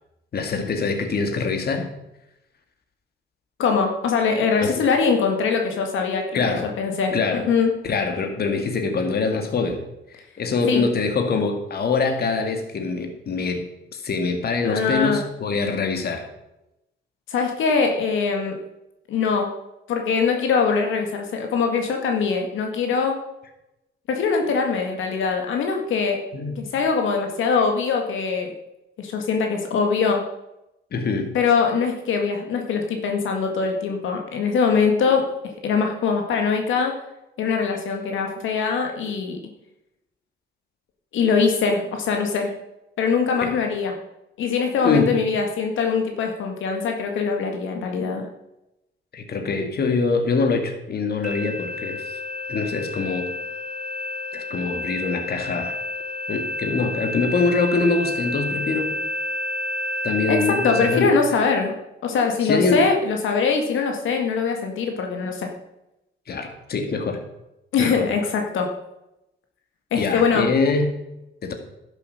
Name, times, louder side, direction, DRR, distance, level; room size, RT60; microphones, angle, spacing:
voice 1, 0.3-1.9 4.6-4.8 6.3-6.7 7.1-7.5 7.8-9.8 10.1-13.7 13.9-16.3 26.3-26.6 30.9-31.3 43.4-43.5 44.8-45.2 49.1-52.2 52.5-53.3 54.3-55.8 56.3-59.0 60.0-61.1 62.4-62.9 66.3-67.2 67.8-68.1 70.0-71.0 71.4-71.5, left 4 dB, 50° left, 5 dB, 2.1 m, -24 dB
voice 2, 3.6-7.7 10.7-10.8 14.6-15.2 17.3-18.5 19.1-19.5 19.9-23.1 24.1-26.2 26.6-28.5 29.0-30.2 31.3-35.2 35.6-36.9 37.4-39.4 41.1-42.5 43.0-43.9 44.4-48.3 60.3-60.4 60.6-65.5 67.7-68.7 69.9-70.5, left 5 dB, 80° left, 3 dB, 1.8 m, -22 dB
sound 1, 51.2-60.9, left 2 dB, 5° right, 4.6 m, -30 dB
11.5 x 7.6 x 6.5 m, 0.90 s
cardioid pair, 90°, 20 cm